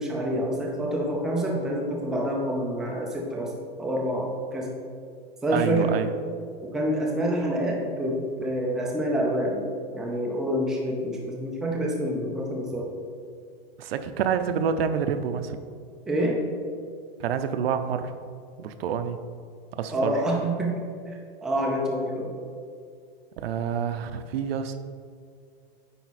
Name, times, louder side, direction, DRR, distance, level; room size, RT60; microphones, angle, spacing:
voice 1, 0.0-3.5 3.8-4.7 5.4-5.9 6.6-9.7 9.9-12.9 16.1-16.4 19.9-21.2 21.4-22.3, right 1 dB, ahead, -3 dB, 0.5 m, -27 dB
voice 2, 5.5-6.1 13.8-15.6 17.2-18.1 18.6-19.2 19.7-20.1 23.4-24.8, right 7 dB, 75° right, 10 dB, 0.6 m, -27 dB
9.3 x 4.1 x 4.2 m, 2.2 s
supercardioid pair, 165°, 30 cm